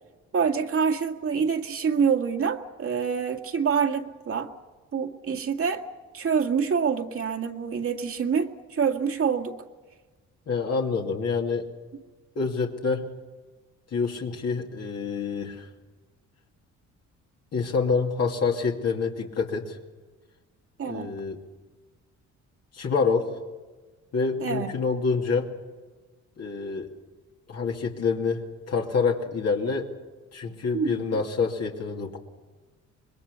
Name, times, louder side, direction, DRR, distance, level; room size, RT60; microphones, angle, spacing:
voice 1, 0.3-4.5 4.9-5.8 6.1-9.6 20.8-21.1 24.4-24.7 30.7-31.0, right 6 dB, 45° right, 5 dB, 2.0 m, -26 dB
voice 2, 10.5-11.7 12.3-13.1 13.9-15.7 17.5-19.8 20.8-21.4 22.7-23.3 24.1-25.5 26.4-26.9 27.5-29.9 30.3-32.2, left 5 dB, 55° left, 0 dB, 2.7 m, -27 dB
25.5 x 21.5 x 7.0 m, 1.3 s
cardioid pair, 90°, 30 cm